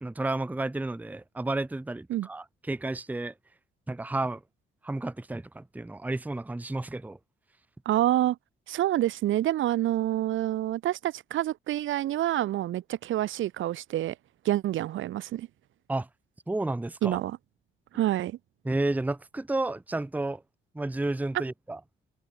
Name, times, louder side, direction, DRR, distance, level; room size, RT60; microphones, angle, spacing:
voice 1, 0.0-3.3 3.9-4.4 4.8-7.2 15.9-16.1 16.5-17.2 18.6-20.4 20.7-21.8, right 2 dB, 10° right, 0.8 m, -31 dB
voice 2, 7.9-8.4 8.7-14.1 14.4-15.5 17.0-17.4 17.9-18.4, right 13 dB, 80° right, 2.5 m, -27 dB
cardioid pair, 90°, 20 cm